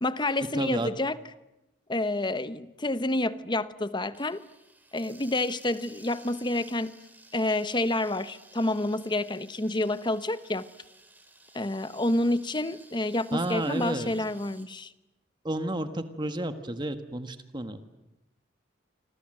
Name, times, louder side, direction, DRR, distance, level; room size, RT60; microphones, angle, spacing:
voice 1, 0.0-1.2 1.9-4.4 4.9-7.0 7.3-10.7 11.5-14.9, left 2 dB, 25° left, 1.0 m, -28 dB
voice 2, 0.5-0.9 13.3-14.1 15.4-18.0, right 1 dB, 25° right, 1.5 m, -31 dB
sound 1, 4.1-14.7, right 2 dB, 10° right, 4.1 m, -54 dB
27.5 x 26.5 x 7.8 m
head